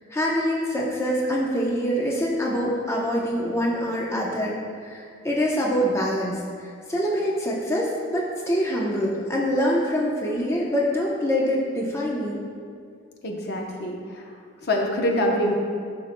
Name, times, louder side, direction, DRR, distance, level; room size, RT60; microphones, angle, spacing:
voice 1, 0.1-6.4 6.9-12.4, equal, 15° left, -4 dB, 0.7 m, -25 dB
voice 2, 13.2-14.2 14.6-15.6, left 1 dB, 55° left, 0 dB, 0.9 m, -25 dB
12.0 x 5.7 x 2.2 m, 2.2 s
head